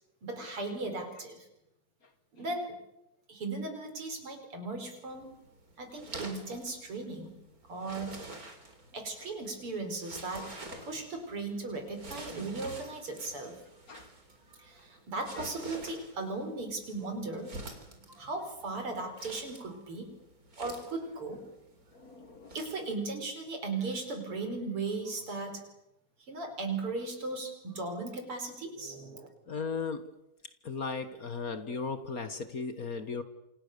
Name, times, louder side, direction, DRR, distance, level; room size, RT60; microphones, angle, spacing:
voice 1, 0.2-1.5 2.3-2.8 3.3-5.4 5.8-7.3 7.7-8.2 8.9-13.6 14.6-17.6 18.1-20.1 20.6-21.4 22.5-25.6 26.3-29.3, right 3 dB, 80° right, 6 dB, 5.9 m, -37 dB
sound 1, 5.1-22.9, right 2 dB, 40° right, 4.2 m, -48 dB
voice 2, 21.9-22.5 29.5-30.1 30.6-33.2, left 4 dB, 45° left, 11 dB, 1.7 m, -37 dB
28.5 x 27.5 x 6.9 m, 0.89 s
omnidirectional pair, 2.4 m